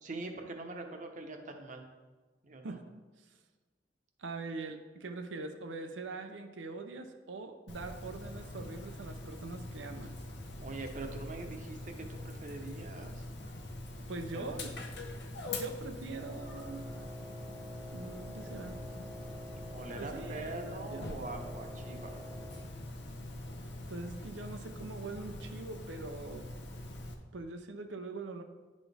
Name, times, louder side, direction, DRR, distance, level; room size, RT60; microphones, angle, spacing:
voice 1, 0.0-1.8 2.4-2.8 10.6-13.2 14.3-14.7 19.7-22.2, right 2 dB, 45° right, 4 dB, 0.8 m, -43 dB
voice 2, 4.2-10.1 14.1-14.7 15.5-16.9 17.6-18.8 19.9-21.1 23.9-26.4 27.3-28.4, right 3 dB, 85° right, 5 dB, 0.6 m, -43 dB
Dog, 7.7-27.1, left 1 dB, 65° left, 0.8 m, -44 dB
Wind instrument woodwind instrument, 16.1-22.8, equal, ahead, 0.8 m, -48 dB
10.5 x 4.2 x 3.4 m, 1.3 s
head